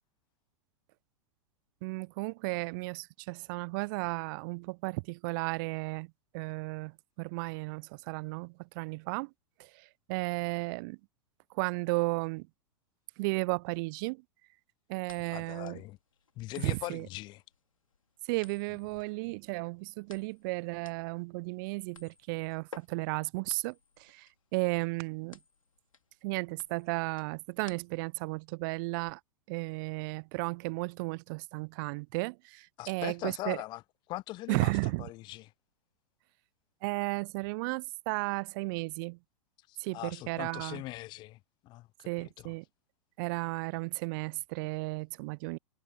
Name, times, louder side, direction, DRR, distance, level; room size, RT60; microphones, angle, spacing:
voice 1, 1.8-6.1 6.3-9.3 9.6-9.7 10.1-11.0 11.6-12.5 13.2-14.2 14.9-15.8 16.6-17.1 18.3-23.7 24.0-25.4 26.2-29.2 29.5-33.6 34.5-35.1 36.8-39.2 39.8-40.8 42.1-42.6 43.2-45.6, right 28 dB, 40° right, 0.3 m, -34 dB
sound 1, 15.0-28.2, left 5 dB, 85° left, 2.9 m, -55 dB
voice 2, 15.3-16.0 16.4-17.4 32.8-33.8 34.1-34.7 35.0-35.5 39.7-41.4 41.6-42.5, left 18 dB, 25° left, 0.4 m, -41 dB
figure-of-eight pair, 95°, 17 cm